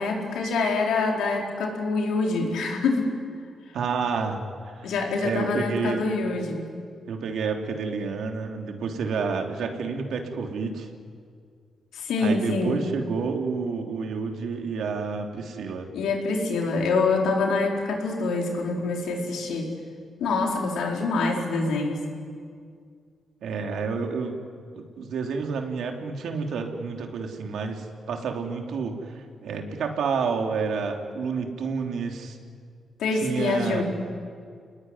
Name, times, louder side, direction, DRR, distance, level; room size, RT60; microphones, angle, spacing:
voice 1, 0.0-3.1 4.8-6.6 11.9-12.8 15.9-19.7 20.2-22.0 33.0-33.8, left 3 dB, 90° left, 0 dB, 5.0 m, -25 dB
voice 2, 3.7-4.5 4.7-4.9 5.2-6.0 7.1-10.9 12.2-15.9 23.4-24.4 24.7-32.4 33.2-33.8, right 5 dB, 80° right, 3 dB, 3.5 m, -29 dB
29.0 x 20.5 x 9.9 m, 2.1 s
cardioid pair, 65°, 0 cm